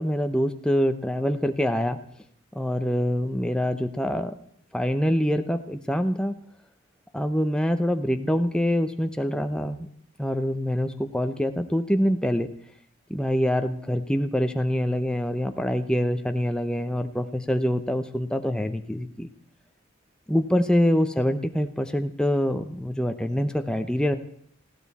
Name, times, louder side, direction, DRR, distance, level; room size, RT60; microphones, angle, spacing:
voice 1, 0.0-2.0 2.5-4.3 4.7-6.4 7.1-9.9 10.2-12.5 13.1-19.3 20.3-24.1, equal, 5° left, 7 dB, 0.8 m, -25 dB
19.5 x 15.0 x 4.2 m, 0.66 s
head